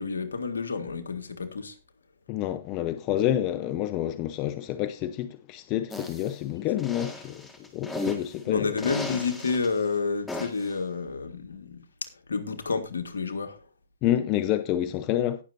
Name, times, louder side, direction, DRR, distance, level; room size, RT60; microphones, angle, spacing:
voice 1, 0.0-1.7 8.5-11.9 12.3-13.6, left 4 dB, 80° left, 1.8 m, -30 dB
voice 2, 2.3-7.5 7.7-8.9 14.0-15.4, left 12 dB, 30° left, 0.7 m, -28 dB
sound 1, 5.9-6.3 6.8-8.3 8.8-9.7 10.3-10.7, left 2 dB, 10° left, 1.7 m, -35 dB
18.0 x 6.6 x 2.6 m
hypercardioid pair, 135°, 0 cm